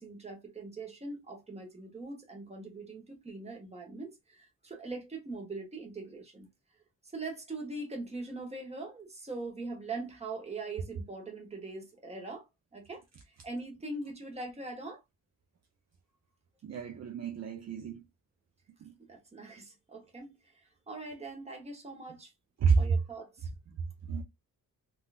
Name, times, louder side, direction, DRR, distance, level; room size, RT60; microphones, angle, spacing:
voice 1, 0.0-6.5 7.1-12.5 12.7-13.0 13.4-15.0 19.0-20.3 20.9-22.3 22.8-23.5, right 3 dB, 20° right, 0.8 m, -42 dB
voice 2, 16.6-18.0 18.8-18.9 22.6-23.0 23.7-24.2, right 5 dB, 50° right, 0.5 m, -29 dB
3.6 x 2.3 x 2.3 m
wide cardioid pair, 175°, 36 cm